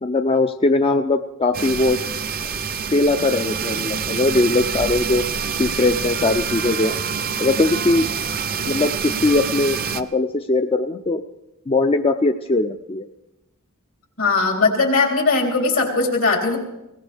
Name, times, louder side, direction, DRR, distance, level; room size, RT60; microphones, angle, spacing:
voice 1, 0.0-2.0 2.9-5.2 5.6-7.0 7.4-8.1 8.7-11.2 11.7-13.1, left 2 dB, 25° left, 7 dB, 0.4 m, -20 dB
sound 1, 1.5-10.0, right 6 dB, 45° right, 0.6 m, -26 dB
voice 2, 14.2-16.6, left 3 dB, 75° left, 0 dB, 3.5 m, -19 dB
21.0 x 18.5 x 3.4 m, 0.94 s
head